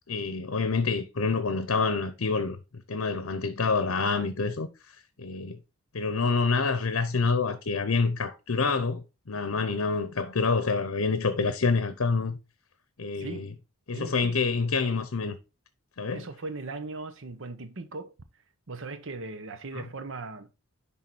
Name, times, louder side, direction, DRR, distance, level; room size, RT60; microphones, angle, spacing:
voice 1, 0.1-2.6 2.9-4.7 5.2-5.6 5.9-12.4 13.0-13.5 13.9-15.4 16.0-16.3 19.7-19.8, left 4 dB, 70° left, 0.8 m, -27 dB
voice 2, 13.9-14.4 16.1-18.1 18.7-20.5, right 3 dB, 60° right, 0.9 m, -38 dB
10.5 x 3.7 x 4.1 m
head